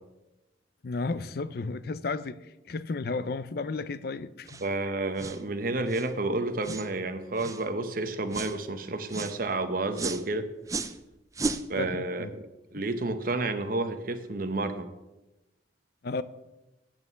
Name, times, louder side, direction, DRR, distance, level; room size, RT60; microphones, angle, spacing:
voice 1, 0.8-4.6 11.8-12.3 16.0-16.2, left 3 dB, 55° left, 0.5 m, -33 dB
sound 1, 4.5-4.7 5.2-5.4 5.9-6.1 6.6-6.9 7.4-7.6 8.3-8.6 9.1-9.4 9.9-10.2 10.7-11.0 11.3-11.6, right 3 dB, 15° right, 0.4 m, -34 dB
voice 2, 4.6-10.5 11.7-12.4 12.7-14.9, right 2 dB, 50° right, 0.9 m, -30 dB
8.8 x 6.7 x 6.9 m
head